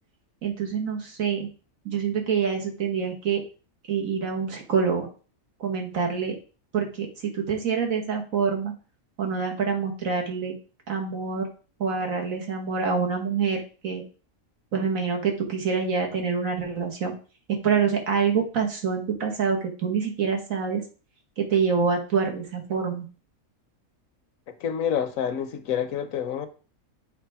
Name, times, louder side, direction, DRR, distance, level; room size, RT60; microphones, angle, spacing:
voice 1, 0.4-1.5 1.8-3.4 3.9-5.1 5.6-6.4 6.7-8.7 9.2-10.5 10.9-11.5 11.8-14.0 14.7-17.1 17.6-20.8 21.4-23.1, right 6 dB, 75° right, 2 dB, 1.9 m, -26 dB
voice 2, 24.6-26.5, left 8 dB, 75° left, 10 dB, 1.2 m, -28 dB
8.3 x 3.5 x 4.7 m, 0.36 s
omnidirectional pair, 1.5 m